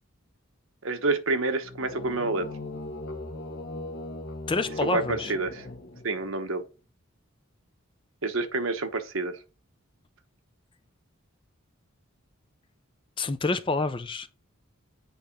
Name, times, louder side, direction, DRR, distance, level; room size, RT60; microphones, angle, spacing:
voice 1, 0.8-2.5 4.8-5.7 6.0-6.6 8.2-9.4, right 3 dB, 70° right, 1.2 m, -28 dB
sound 1, 1.6-6.3, left 2 dB, 50° left, 1.6 m, -39 dB
voice 2, 4.5-5.3 13.2-14.3, left 3 dB, 25° left, 0.5 m, -28 dB
8.5 x 3.9 x 5.9 m
head